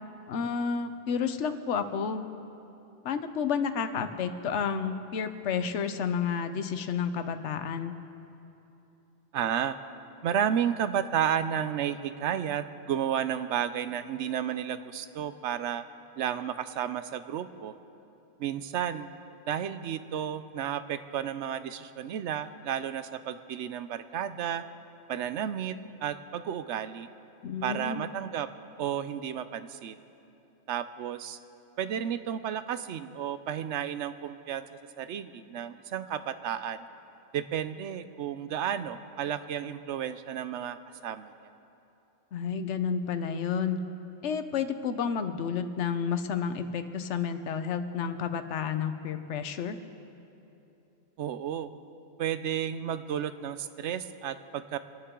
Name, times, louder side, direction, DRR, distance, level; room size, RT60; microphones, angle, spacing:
voice 1, 0.3-2.2 3.0-7.9 27.4-28.1 42.3-43.8 44.2-49.8, left 6 dB, 80° left, 9 dB, 1.1 m, -31 dB
voice 2, 9.3-9.8 10.2-15.9 16.2-17.7 18.4-19.1 19.5-24.6 25.1-27.1 27.6-28.5 28.8-30.0 30.7-31.4 31.8-34.6 35.0-36.8 37.3-40.8 41.0-41.3 51.2-51.7 52.2-54.8, right 9 dB, 80° right, 12 dB, 0.9 m, -32 dB
26.5 x 9.8 x 3.7 m, 2.9 s
omnidirectional pair, 1.2 m